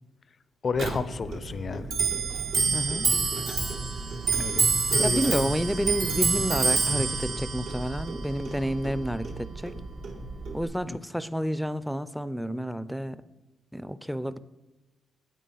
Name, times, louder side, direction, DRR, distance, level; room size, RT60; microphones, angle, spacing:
voice 1, 0.6-1.9 4.3-5.4, left 5 dB, 50° left, 0.5 m, -31 dB
Clock, 0.8-10.6, right 4 dB, 75° right, 1.6 m, -28 dB
voice 2, 2.7-3.1 5.0-9.8 10.5-13.2 13.7-14.4, equal, ahead, 0.5 m, -30 dB
8.9 x 8.3 x 4.0 m
supercardioid pair, 60°, 0 cm